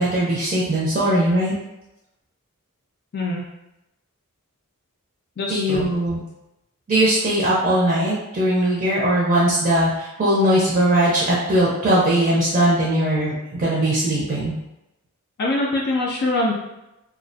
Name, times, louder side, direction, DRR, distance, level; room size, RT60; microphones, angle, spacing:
voice 1, 0.0-1.5 5.5-6.2 6.9-14.5, right 1 dB, 35° right, -7 dB, 0.5 m, -20 dB
voice 2, 5.4-5.9 15.4-16.5, left 2 dB, 45° left, -2 dB, 0.4 m, -23 dB
2.3 x 2.1 x 2.6 m, 0.92 s
head